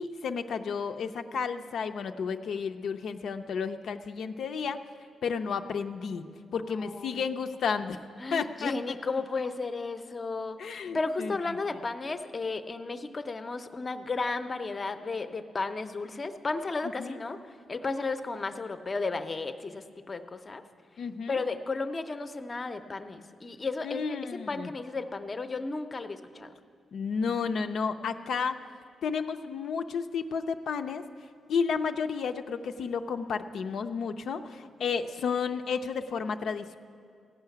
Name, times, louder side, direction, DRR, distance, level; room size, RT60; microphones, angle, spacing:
voice 1, 0.0-4.8 5.2-6.2 6.5-8.0 8.3-8.7 10.6-11.6 17.0-17.2 21.0-21.4 23.8-24.7 26.9-28.6 29.0-31.0 31.5-36.7, left 6 dB, 75° left, 7 dB, 0.5 m, -32 dB
voice 2, 6.6-7.2 8.2-20.6 21.3-26.5, left 3 dB, 35° left, 8 dB, 0.6 m, -34 dB
15.5 x 5.7 x 9.1 m, 2.2 s
cardioid pair, 100°, 0 cm